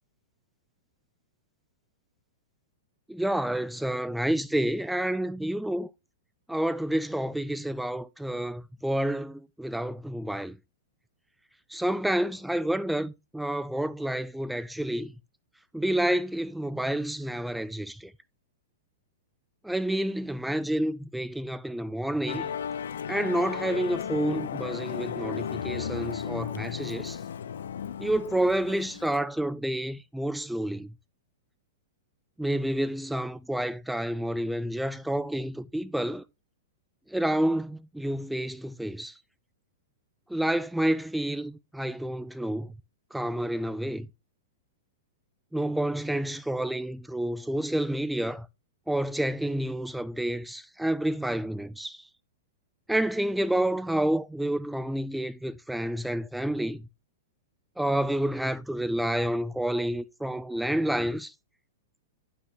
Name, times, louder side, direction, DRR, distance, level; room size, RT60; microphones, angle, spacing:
voice 1, 3.1-5.9 6.5-10.6 11.7-15.1 15.7-18.1 19.6-22.5 23.1-27.2 28.0-30.9 32.4-36.2 37.1-39.1 40.3-42.7 43.1-44.1 45.5-48.5 48.9-52.0 52.9-56.8 57.8-61.3, right 1 dB, ahead, 0.3 m, -29 dB
Musical instrument, 22.3-29.2, left 8 dB, 85° left, 0.6 m, -35 dB
9.8 x 6.1 x 2.8 m
hypercardioid pair, 145°, 0 cm